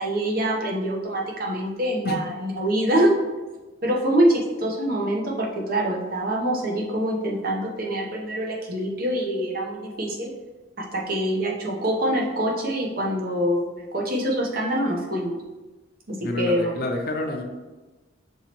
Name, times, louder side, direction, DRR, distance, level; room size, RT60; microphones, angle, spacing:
voice 1, 0.0-3.1 3.8-10.3 10.8-15.4 16.1-16.7, right 1 dB, 50° right, -1 dB, 0.8 m, -25 dB
voice 2, 16.2-17.4, left 2 dB, 50° left, 2 dB, 0.5 m, -28 dB
5.7 x 3.0 x 2.9 m, 1.2 s
head